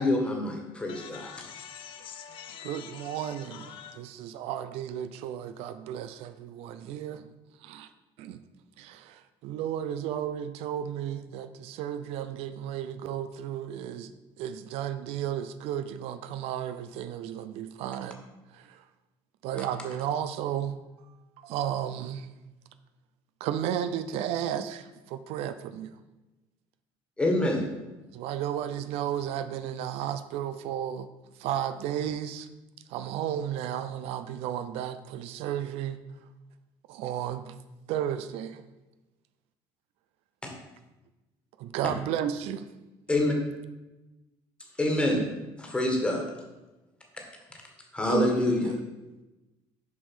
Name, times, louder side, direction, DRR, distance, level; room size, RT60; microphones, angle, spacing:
voice 1, 0.0-1.3 27.2-27.6 43.1-43.3 44.8-45.2 45.6-46.2 47.9-48.7, left 2 dB, 10° left, 1.6 m, -26 dB
voice 2, 0.9-4.0, left 8 dB, 55° left, 0.7 m, -45 dB
voice 3, 2.6-7.3 7.6-7.9 8.2-8.4 8.8-14.1 14.4-18.2 18.5-18.8 19.4-20.8 21.4-22.3 23.4-25.9 28.1-31.1 31.4-32.5 32.9-36.0 36.9-37.5 37.9-38.6 41.6-42.7 48.1-48.6, right 10 dB, 75° right, 0.6 m, -33 dB
6.8 x 5.2 x 6.3 m
cardioid pair, 150°, 10 cm